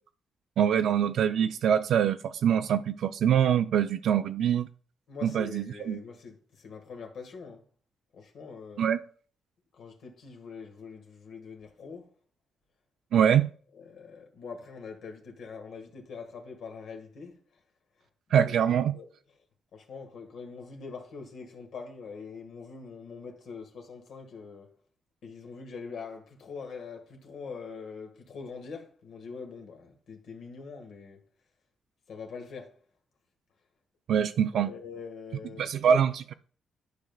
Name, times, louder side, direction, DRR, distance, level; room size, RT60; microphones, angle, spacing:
voice 1, 0.6-4.7 5.2-6.0 8.8-9.0 13.1-13.5 18.3-18.9 34.1-34.7 35.6-36.3, right 8 dB, 70° right, 0.4 m, -24 dB
voice 2, 5.1-7.6 8.1-8.8 9.8-12.1 13.2-13.3 13.7-17.4 18.3-19.1 19.7-24.7 25.2-31.2 32.1-32.8 34.5-36.0, left 5 dB, 70° left, 1.6 m, -43 dB
11.5 x 5.2 x 2.3 m
cardioid pair, 130°, 0 cm